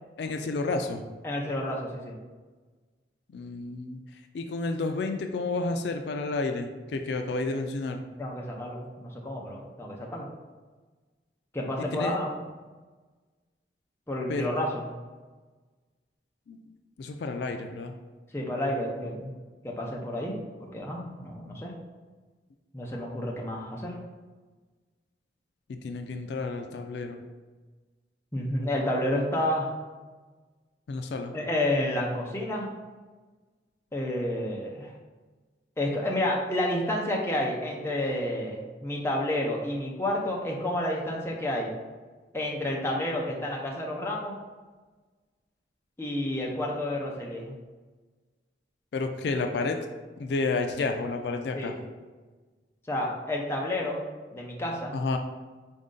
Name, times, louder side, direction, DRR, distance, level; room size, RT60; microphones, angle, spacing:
voice 1, 0.2-1.0 3.3-8.0 11.8-12.2 14.3-14.6 16.5-16.6 17.0-17.9 25.7-27.2 30.9-31.4 48.9-49.8 50.2-51.7 54.9-55.2, left 3 dB, 70° left, 5 dB, 0.3 m, -31 dB
voice 2, 1.2-2.1 8.2-10.3 11.5-12.3 14.1-14.8 18.3-19.3 19.6-21.7 22.7-24.0 28.3-29.7 31.3-32.7 33.9-34.9 35.8-41.7 42.3-44.4 46.0-47.5 51.5-51.7 52.9-54.0 54.3-54.9, left 1 dB, 15° left, -2 dB, 0.6 m, -30 dB
4.2 x 2.6 x 3.7 m, 1.3 s
head